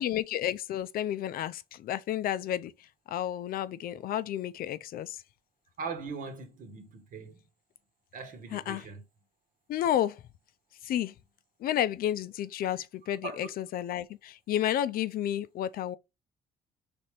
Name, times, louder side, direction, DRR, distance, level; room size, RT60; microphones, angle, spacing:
voice 1, 0.0-2.7 3.1-5.2 8.5-8.9 9.7-10.2 10.8-11.1 11.6-16.0, left 11 dB, 60° left, 0.5 m, -31 dB
voice 2, 5.8-7.4 8.1-9.0 13.2-13.4, right 4 dB, 55° right, 1.2 m, -40 dB
4.2 x 3.4 x 3.3 m
cardioid pair, 110°, 17 cm